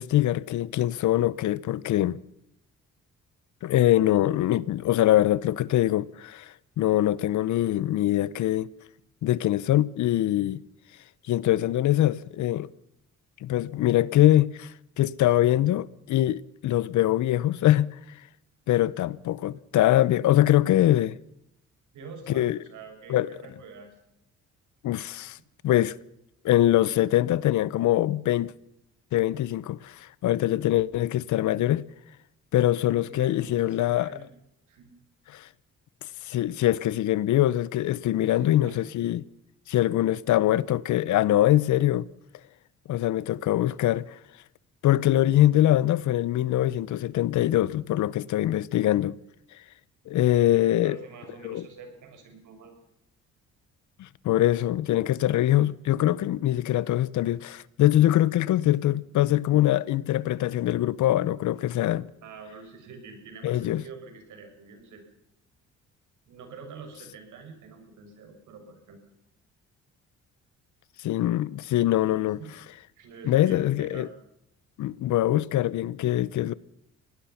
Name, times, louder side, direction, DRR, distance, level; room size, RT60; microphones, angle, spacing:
voice 1, 0.0-2.2 3.6-8.7 9.2-10.6 11.3-12.7 13.4-14.7 15.0-18.0 18.7-21.2 22.3-22.6 23.1-23.3 24.8-25.4 25.6-25.9 26.4-28.5 29.1-31.8 32.5-34.2 35.3-35.5 36.2-39.2 39.7-42.1 42.9-44.2 44.8-49.2 50.1-51.0 51.4-51.7 54.0-62.1 63.4-63.8 71.0-72.4 73.2-74.1 74.8-76.5, left 13 dB, 75° left, 0.8 m, -23 dB
voice 2, 21.9-23.9 32.7-34.3 34.7-34.9 38.2-38.8 50.8-52.7 62.2-65.0 66.2-69.0 72.2-72.5 73.0-74.1, right 5 dB, 80° right, 6.6 m, -46 dB
24.5 x 18.5 x 5.8 m
cardioid pair, 90°, 30 cm